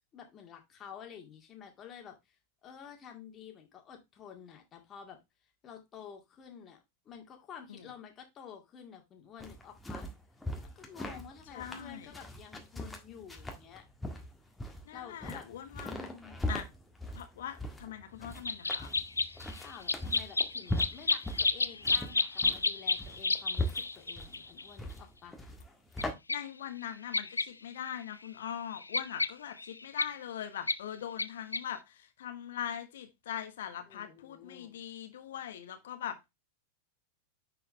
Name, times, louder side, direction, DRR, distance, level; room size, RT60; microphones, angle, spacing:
voice 1, 0.1-2.4 2.6-5.2 5.6-6.8 7.1-10.1 10.8-13.8 14.9-15.5 15.8-16.6 19.3-25.4 33.9-34.7, left 7 dB, 25° left, 2.2 m, -50 dB
sound 1, 9.4-26.1, left 1 dB, 5° left, 1.5 m, -40 dB
voice 2, 11.5-12.1 14.8-16.1 16.5-16.7 17.1-18.9 26.3-36.2, left 10 dB, 60° left, 1.3 m, -41 dB
sound 2, 18.4-24.7 26.0-26.1 26.3-26.4 27.1-27.4 27.9-28.0 28.2-30.0 30.7-30.8 31.2-31.3 31.5-31.6, left 3 dB, 80° left, 0.4 m, -31 dB
9.9 x 4.7 x 3.3 m
figure-of-eight pair, 90°, 0 cm